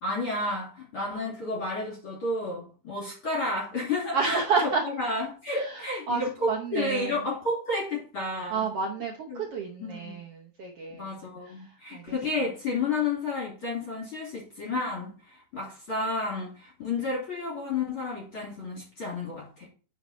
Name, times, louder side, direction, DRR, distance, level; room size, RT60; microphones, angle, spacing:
voice 1, 0.0-8.7 9.3-9.4 9.8-10.2 10.9-19.7, left 2 dB, 40° left, -2 dB, 3.2 m, -31 dB
voice 2, 4.1-4.8 5.5-7.2 8.5-11.1 11.4-12.2, right 4 dB, 70° right, 0 dB, 1.4 m, -31 dB
9.6 x 5.6 x 4.2 m, 0.38 s
omnidirectional pair, 4.2 m